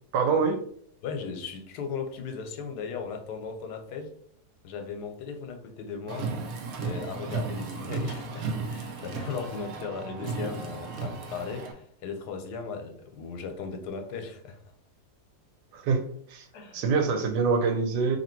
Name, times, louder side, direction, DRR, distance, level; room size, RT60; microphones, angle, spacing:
voice 1, 0.1-0.6 15.7-16.5 16.7-18.2, right 5 dB, 85° right, 1.3 m, -25 dB
voice 2, 1.0-4.1 4.6-6.3 6.8-14.6 16.5-16.8, left 5 dB, 80° left, 1.2 m, -37 dB
Car, 6.1-11.7, right 4 dB, 70° right, 1.0 m, -35 dB
2.9 x 2.8 x 4.4 m
omnidirectional pair, 1.7 m